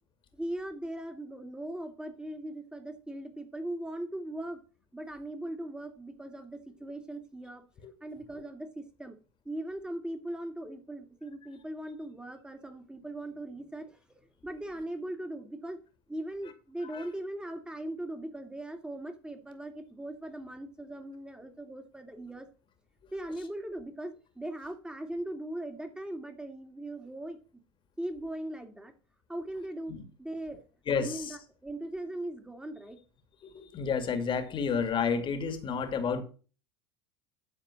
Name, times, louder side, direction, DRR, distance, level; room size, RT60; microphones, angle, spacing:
voice 1, 0.3-4.6 4.9-7.6 8.0-9.2 9.4-15.8 16.1-22.5 23.1-27.4 28.0-28.9 29.3-30.6 31.0-33.0, right 1 dB, 5° right, 2.2 m, -39 dB
voice 2, 30.9-31.4 33.5-36.2, left 6 dB, 40° left, 2.3 m, -30 dB
11.5 x 4.4 x 6.3 m
hypercardioid pair, 85°, 13 cm